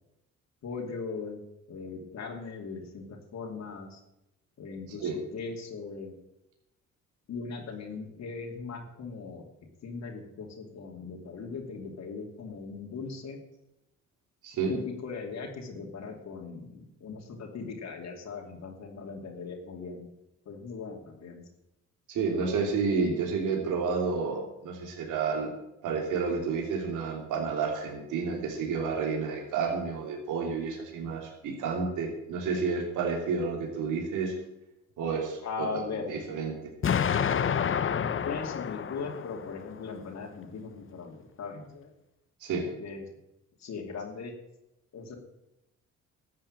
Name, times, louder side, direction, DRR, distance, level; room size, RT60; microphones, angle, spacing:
voice 1, 0.6-1.4 1.7-4.0 4.6-6.1 7.3-9.4 9.8-13.4 14.7-20.1 20.5-21.4 31.0-31.2 35.4-36.1 38.0-41.9 42.8-43.0 43.6-44.3 44.9-45.2, left 4 dB, 65° left, 1 dB, 2.8 m, -39 dB
voice 2, 22.1-25.5 25.8-34.3 35.0-35.7 36.1-36.5 42.4-42.6, right 5 dB, 85° right, 1 dB, 3.1 m, -30 dB
Explosion, 36.8-39.8, left 8 dB, 45° left, 0.9 m, -29 dB
13.0 x 7.6 x 9.0 m, 0.89 s
cardioid pair, 90°, 30 cm